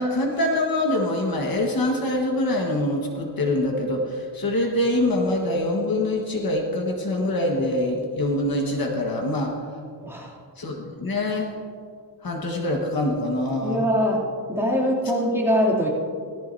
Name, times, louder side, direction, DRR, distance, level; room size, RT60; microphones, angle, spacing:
voice 1, 0.0-9.5 10.6-11.6 12.2-13.9 14.8-14.9, left 1 dB, 50° left, 0 dB, 1.7 m, -24 dB
voice 2, 10.0-10.4 13.6-15.9, equal, 5° right, -5 dB, 3.0 m, -23 dB
18.0 x 14.0 x 2.8 m, 2.3 s
wide cardioid pair, 105°, 44 cm